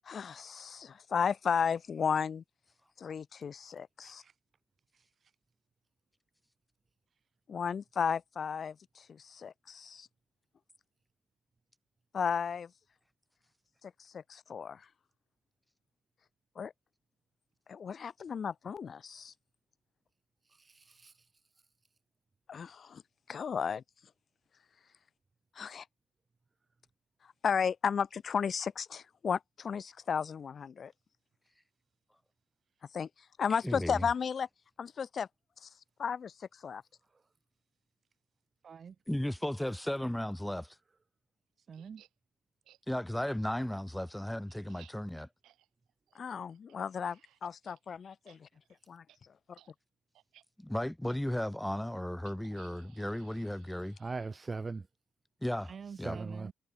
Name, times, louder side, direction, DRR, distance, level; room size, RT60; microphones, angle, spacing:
voice 1, 0.0-2.4 3.0-4.2 7.5-10.1 12.1-12.7 13.8-14.9 16.6-16.7 17.7-19.3 22.5-23.0 23.3-23.8 25.5-25.9 27.2-30.9 32.9-33.1 33.4-34.5 34.8-35.3 35.6-35.7 36.0-36.8 46.1-48.5 48.9-49.3, left 6 dB, 50° left, 2.5 m, -34 dB
voice 2, 4.0-4.4 4.9-5.3 7.1-7.2 38.6-39.0 41.6-42.0 48.3-48.5 53.1-53.2 55.6-56.5, right 6 dB, 45° right, 2.6 m, -49 dB
voice 3, 20.5-21.1 54.0-54.9 56.0-56.5, right 4 dB, 30° right, 2.5 m, -39 dB
voice 4, 33.6-34.1 39.1-40.8 42.9-45.3 50.6-54.0 55.4-55.7 56.0-56.2, left 1 dB, 5° left, 2.7 m, -35 dB
sound 1, 41.7-42.1 42.6-42.8 43.3-43.4 43.8-47.8 48.1-48.4 48.6-48.8 49.1-49.2 49.5-49.7 50.1-50.4 51.1-51.2 52.2-54.6, right 13 dB, 85° right, 5.3 m, -63 dB
cardioid pair, 90°, 0 cm